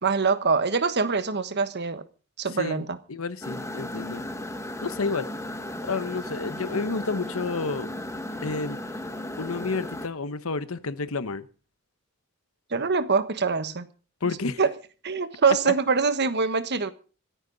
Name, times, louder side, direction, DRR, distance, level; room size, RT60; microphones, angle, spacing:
voice 1, 0.0-2.0 2.4-3.0 12.7-13.9 14.6-14.7 15.0-16.9, right 5 dB, 55° right, 1.3 m, -24 dB
voice 2, 2.5-2.8 3.1-4.2 4.8-5.3 5.8-7.9 8.4-8.8 9.4-11.5 14.2-14.6 15.6-15.7, left 4 dB, 75° left, 1.0 m, -30 dB
sound 1, 3.4-10.1, left 1 dB, 15° left, 1.2 m, -35 dB
26.0 x 9.3 x 4.0 m
head